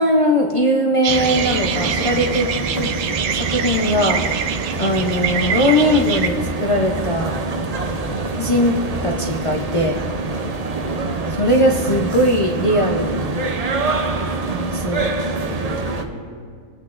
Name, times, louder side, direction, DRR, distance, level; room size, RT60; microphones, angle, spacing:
voice 1, 0.0-2.5 2.8-2.9 3.3-4.2 4.8-7.3 8.4-8.8 9.0-10.0 11.3-13.2 14.5-15.1, equal, 60° left, -2 dB, 0.3 m, -19 dB
sound 1, 1.0-6.3, right 8 dB, 85° right, 1.1 m, -25 dB
sound 2, 1.1-16.0, right 3 dB, 60° right, 0.4 m, -25 dB
voice 2, 2.0-2.3 7.7-7.9 10.3-10.5 13.9-14.3 15.3-16.4, equal, 75° left, -5 dB, 2.7 m, -38 dB
19.5 x 8.3 x 2.5 m, 2.1 s
omnidirectional pair, 1.6 m